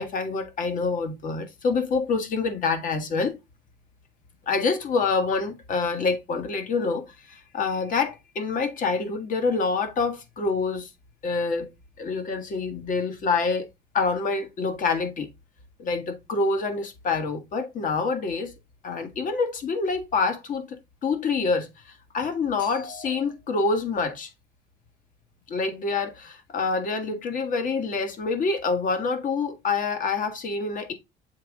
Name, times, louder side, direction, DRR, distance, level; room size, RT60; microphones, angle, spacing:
voice 1, 0.0-3.4 4.5-10.9 11.2-11.7 12.0-13.7 13.9-15.3 15.8-18.5 18.8-20.8 21.0-24.3 25.5-30.9, left 4 dB, 50° left, 1.6 m, -26 dB
7.3 x 3.7 x 3.6 m
cardioid pair, 110°, 17 cm